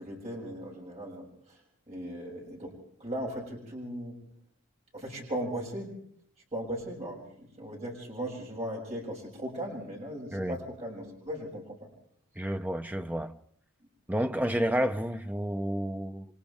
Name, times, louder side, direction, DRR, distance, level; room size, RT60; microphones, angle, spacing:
voice 1, 0.0-1.6 1.9-2.7 3.0-4.1 4.9-5.9 6.5-11.9, equal, 30° right, 7.2 m, -38 dB
voice 2, 12.4-13.3 14.1-16.3, equal, 5° right, 0.7 m, -30 dB
29.5 x 25.5 x 3.6 m
head